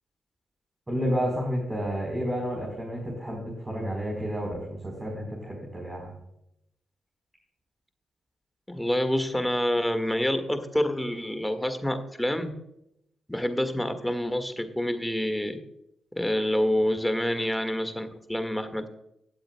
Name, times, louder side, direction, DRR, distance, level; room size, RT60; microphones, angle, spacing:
voice 1, 0.9-6.2, equal, 20° right, -2 dB, 4.0 m, -31 dB
voice 2, 8.7-12.5 13.3-15.6 16.2-18.9, left 1 dB, 5° left, 9 dB, 1.7 m, -27 dB
18.5 x 7.7 x 2.2 m, 0.79 s
supercardioid pair, 50°, 0 cm